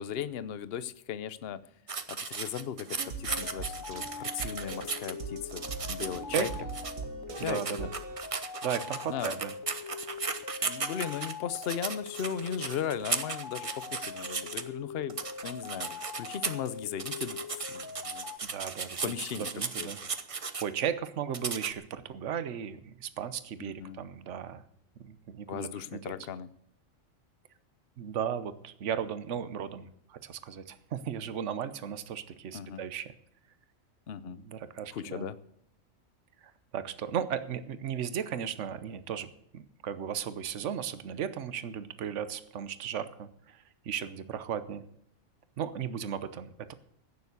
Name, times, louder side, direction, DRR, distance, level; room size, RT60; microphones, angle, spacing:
voice 1, 0.0-1.6 2.1-6.5 7.4-7.9 9.1-9.4 10.6-15.2 15.4-18.3 19.0-19.5 19.8-19.9 23.6-24.0 25.5-26.5 32.5-32.8 34.1-34.4 34.9-35.4, left 8 dB, 55° left, 15 dB, 0.9 m, -37 dB
sound 1, 1.9-5.1 5.5-6.9 7.3-14.6 15.1-16.7 17.0-20.6 21.3-21.7, right 5 dB, 30° right, 0.7 m, -36 dB
sound 2, 2.9-8.2, right 5 dB, 85° right, 1.8 m, -42 dB
sound 3, 3.3-18.4, left 5 dB, 35° left, 0.3 m, -43 dB
voice 2, 7.4-7.9 8.6-9.5 18.5-20.0 20.3-24.6 25.0-26.1 28.0-33.1 34.2-35.3 36.7-39.3 39.5-44.8 45.6-46.7, right 8 dB, 65° right, 13 dB, 1.2 m, -36 dB
16.0 x 7.0 x 8.1 m, 0.71 s
omnidirectional pair, 1.4 m